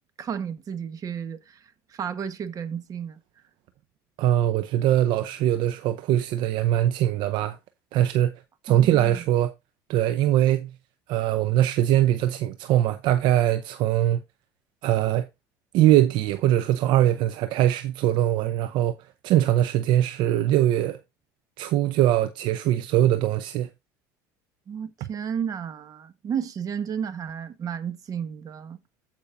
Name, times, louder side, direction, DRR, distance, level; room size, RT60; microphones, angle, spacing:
voice 1, 0.2-1.6 1.9-3.2 8.7-9.2 24.7-28.8, right 7 dB, 45° right, 1.3 m, -32 dB
voice 2, 4.2-7.6 7.9-8.3 8.6-9.5 9.9-10.7 11.1-14.2 14.8-15.3 15.7-18.9 19.2-21.0 21.6-23.7, right 12 dB, 65° right, 0.7 m, -22 dB
14.5 x 5.4 x 2.6 m
supercardioid pair, 85°, 9 cm